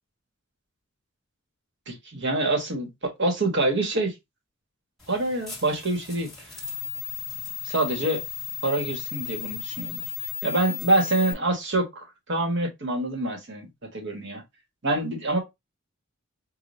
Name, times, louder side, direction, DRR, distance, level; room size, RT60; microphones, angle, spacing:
voice 1, 1.9-4.1 5.1-6.3 7.6-8.2 8.6-10.1 10.4-14.4 14.8-15.4, right 2 dB, 60° right, 1.4 m, -26 dB
sound 1, 5.0-11.3, left 8 dB, ahead, 1.8 m, -35 dB
5.1 x 2.5 x 2.6 m
head